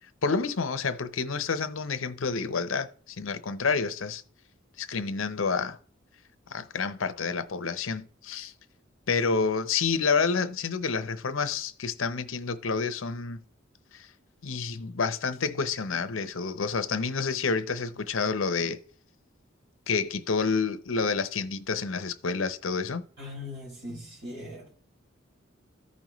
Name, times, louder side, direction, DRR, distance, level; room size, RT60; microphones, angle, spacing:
voice 1, 0.2-4.2 4.8-5.8 6.5-8.5 9.1-13.4 13.9-14.1 14.4-18.8 19.9-23.0, left 5 dB, 80° left, 0.7 m, -29 dB
voice 2, 23.2-24.7, left 2 dB, 55° right, 4.9 m, -40 dB
14.0 x 5.3 x 3.1 m
head